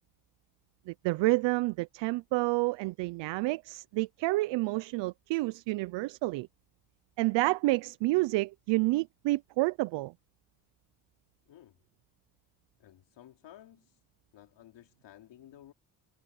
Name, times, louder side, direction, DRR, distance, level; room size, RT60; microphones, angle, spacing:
voice 1, 0.9-6.5 7.2-10.1, right 21 dB, 85° right, 0.7 m, -29 dB
voice 2, 11.5-11.8 12.8-14.0 14.3-15.7, left 12 dB, 75° left, 4.2 m, -54 dB
supercardioid pair, 55°, 42 cm